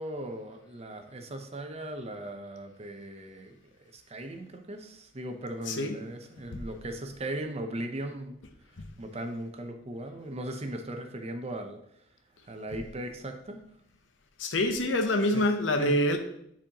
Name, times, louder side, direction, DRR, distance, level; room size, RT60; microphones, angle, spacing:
voice 1, 0.0-3.5 3.9-8.4 9.0-11.8 12.5-13.6 15.3-15.4 15.8-16.0, right 1 dB, 35° right, 5 dB, 0.7 m, -38 dB
voice 2, 14.4-16.2, left 1 dB, 85° left, 6 dB, 0.8 m, -26 dB
9.9 x 4.3 x 2.9 m, 0.74 s
head